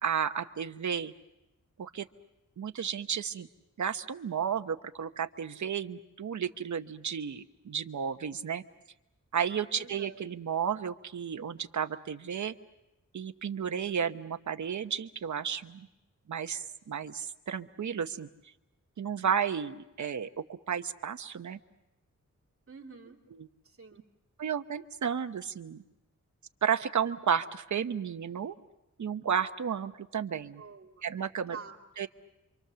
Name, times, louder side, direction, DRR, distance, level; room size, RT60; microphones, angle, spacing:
voice 1, 0.0-1.1 1.8-2.1 2.6-3.5 3.8-8.6 9.3-12.5 13.1-15.9 16.3-18.3 19.0-21.6 24.4-25.8 26.6-28.6 29.0-30.6 31.0-31.6 32.0-32.1, right 7 dB, 70° right, 8 dB, 1.0 m, -33 dB
voice 2, 9.7-10.2 22.7-23.2 23.6-24.0 30.6-31.0 31.5-31.8, right 5 dB, 45° right, 0 dB, 2.8 m, -47 dB
27.5 x 25.0 x 6.9 m, 0.96 s
wide cardioid pair, 120°, 30 cm